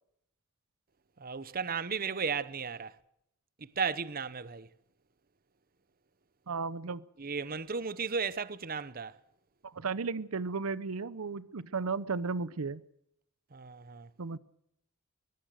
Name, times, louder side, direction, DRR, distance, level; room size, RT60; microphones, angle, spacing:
voice 1, 1.2-2.9 3.6-4.7 7.2-9.1 13.5-14.1, right 5 dB, 45° right, 0.9 m, -35 dB
voice 2, 6.5-7.1 9.6-12.8 14.2-14.4, right 4 dB, 80° right, 0.7 m, -34 dB
23.5 x 18.0 x 6.6 m
head